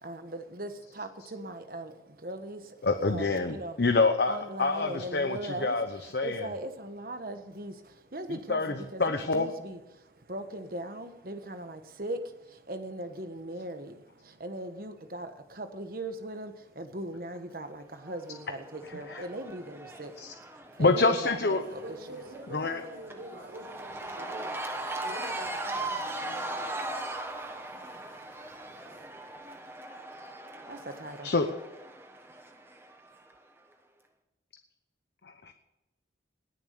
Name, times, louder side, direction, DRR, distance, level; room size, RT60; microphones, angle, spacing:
voice 1, 0.0-3.8 4.3-5.8 6.2-20.1 20.8-22.2 30.7-31.3, right 1 dB, 50° right, 1.3 m, -39 dB
voice 2, 2.8-6.5 8.3-9.5 18.8-19.3 20.2-20.3 20.8-21.6 22.5-22.8 31.2-31.5 35.2-35.5, left 3 dB, 65° left, 0.9 m, -27 dB
Cheering / Crowd, 18.0-33.3, right 2 dB, 15° right, 1.2 m, -39 dB
voice 3, 21.5-29.1, right 1 dB, 90° right, 5.3 m, -47 dB
19.5 x 7.2 x 6.7 m
head